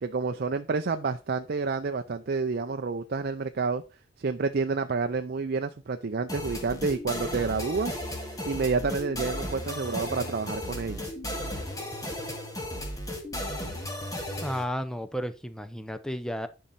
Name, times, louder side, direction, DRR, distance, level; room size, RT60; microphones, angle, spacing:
voice 1, 0.0-3.8 4.2-8.0 8.4-11.0, right 4 dB, 55° right, 8 dB, 0.5 m, -29 dB
sound 1, 6.3-14.6, left 1 dB, 20° left, 2.0 m, -35 dB
voice 2, 14.4-16.5, equal, 5° left, 10 dB, 0.6 m, -33 dB
10.5 x 5.5 x 4.2 m, 0.31 s
head